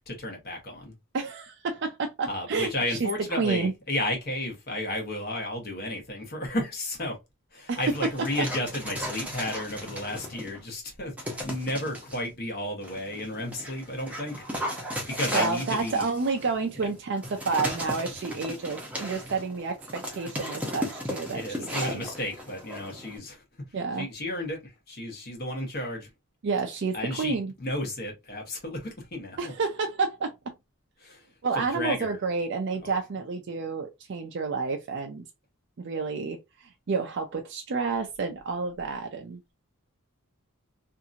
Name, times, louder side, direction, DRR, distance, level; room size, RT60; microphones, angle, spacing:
voice 1, 0.1-0.9 2.2-7.2 7.5-14.5 15.0-16.0 21.3-23.4 24.0-26.1 26.9-29.5 31.0-31.3 31.5-32.2 32.8-32.9, left 1 dB, 45° left, 1.0 m, -33 dB
voice 2, 1.1-3.1 3.4-3.7 7.7-7.9 14.9-15.1 15.3-22.0 23.7-24.1 26.4-27.5 29.4-30.3 31.4-35.2 35.8-39.5, right 4 dB, 50° right, 0.4 m, -30 dB
Dog, 7.7-10.6 11.2-12.2 12.8-23.2, equal, 5° right, 0.7 m, -36 dB
2.8 x 2.5 x 2.4 m
head